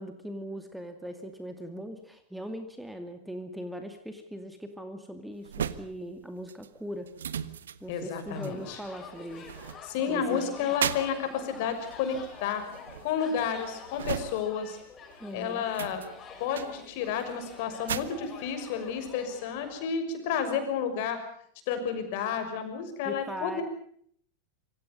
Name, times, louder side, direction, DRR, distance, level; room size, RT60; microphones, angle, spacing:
voice 1, 0.0-7.1 7.8-9.4 10.1-10.7 15.2-15.6 23.0-23.6, equal, 5° right, 7 dB, 2.4 m, -40 dB
sound 1, 5.4-14.8 15.1-19.1, right 8 dB, 65° right, 1.4 m, -38 dB
voice 2, 7.9-8.8 9.8-12.6 13.0-14.8 15.3-16.0 16.4-21.2 21.7-23.6, left 7 dB, 50° left, 8 dB, 6.2 m, -31 dB
sound 2, 8.3-19.9, left 5 dB, 25° left, 6.8 m, -48 dB
26.5 x 25.0 x 5.4 m, 0.63 s
figure-of-eight pair, 90°, 0 cm